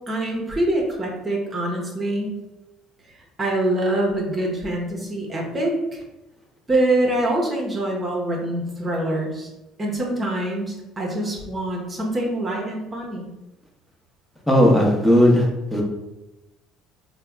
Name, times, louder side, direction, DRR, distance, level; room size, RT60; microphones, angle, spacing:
voice 1, 0.1-2.4 3.4-6.0 6.7-9.5 9.8-13.3, right 1 dB, 30° right, -2 dB, 1.0 m, -24 dB
voice 2, 14.5-15.8, equal, 5° left, -2 dB, 1.0 m, -16 dB
3.4 x 2.2 x 3.4 m, 0.99 s
hypercardioid pair, 70°, 0 cm